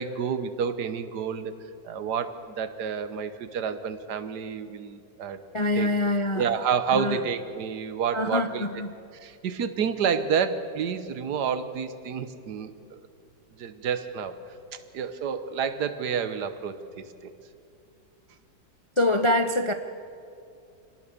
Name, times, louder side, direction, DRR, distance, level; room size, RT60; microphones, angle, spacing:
voice 1, 0.0-1.5 1.8-5.4 5.8-5.9 6.4-8.7 9.1-13.0 13.6-14.4 14.7-16.8, right 7 dB, 70° right, 10 dB, 1.6 m, -29 dB
voice 2, 5.5-6.5 6.9-7.2 8.1-8.9 19.0-19.7, left 1 dB, 50° left, 7 dB, 0.3 m, -25 dB
26.5 x 18.5 x 6.9 m, 2.5 s
omnidirectional pair, 1.9 m